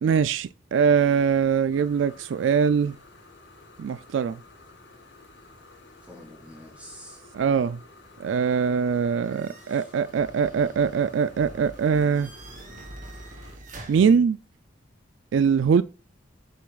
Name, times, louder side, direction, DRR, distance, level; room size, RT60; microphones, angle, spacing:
voice 1, 0.0-3.0 3.8-4.4 7.3-7.8 8.2-12.3 13.9-14.4 15.3-15.8, right 6 dB, 70° right, 0.3 m, -22 dB
sound 1, 1.7-13.6, left 3 dB, 65° left, 3.5 m, -52 dB
voice 2, 5.9-7.3 9.3-9.9, left 1 dB, 5° right, 3.1 m, -48 dB
sound 2, 9.2-14.2, right 1 dB, 40° right, 1.6 m, -45 dB
7.8 x 6.9 x 2.4 m
head